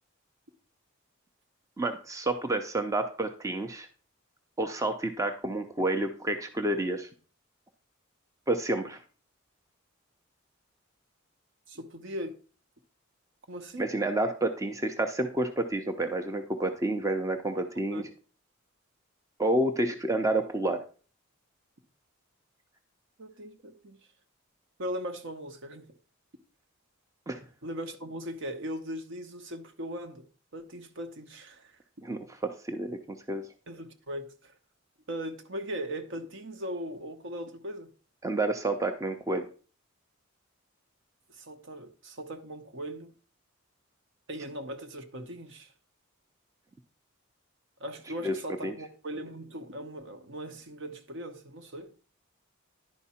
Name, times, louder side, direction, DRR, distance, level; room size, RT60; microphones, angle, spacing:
voice 1, 1.8-3.9 4.6-7.1 8.5-9.0 13.8-18.0 19.4-20.8 27.3-27.4 32.0-33.0 33.3-33.5 38.2-39.5 48.2-48.4 48.6-48.7, right 1 dB, 15° right, 0.5 m, -29 dB
voice 2, 11.7-12.4 13.5-13.9 17.9-18.0 23.2-24.0 24.8-25.9 27.6-30.3 30.5-31.8 33.7-34.5 35.1-37.9 41.3-43.1 44.3-45.7 47.8-51.9, equal, 60° right, 0.9 m, -39 dB
10.5 x 4.7 x 4.2 m
head